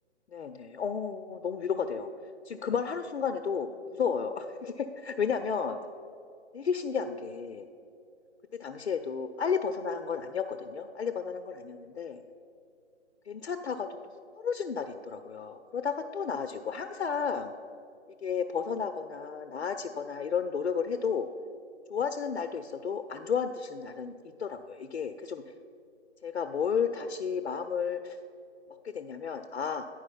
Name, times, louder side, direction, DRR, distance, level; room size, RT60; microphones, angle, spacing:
voice 1, 0.3-2.1 2.4-5.8 6.5-7.7 8.6-12.2 13.3-13.9 14.3-17.5 18.2-21.3 21.9-25.4 26.2-28.2 28.8-29.8, left 6 dB, 70° left, 7 dB, 0.5 m, -32 dB
9.9 x 4.8 x 5.6 m, 2.5 s
figure-of-eight pair, 145°, 35 cm